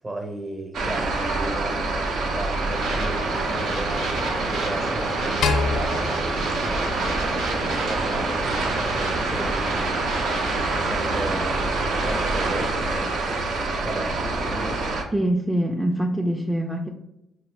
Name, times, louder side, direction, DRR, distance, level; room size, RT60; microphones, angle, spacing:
voice 1, 0.0-4.1 4.4-15.0, right 1 dB, 25° right, 4 dB, 0.8 m, -35 dB
sound 1, 0.7-15.0, right 3 dB, 70° right, 0.7 m, -27 dB
sound 2, 2.7-12.7, right 2 dB, 90° right, 1.0 m, -30 dB
sound 3, 5.4-7.8, left 4 dB, 75° left, 0.4 m, -28 dB
voice 2, 15.1-16.9, right 1 dB, 5° right, 1 dB, 0.4 m, -24 dB
4.0 x 2.7 x 3.2 m, 0.91 s
cardioid pair, 90°, 0 cm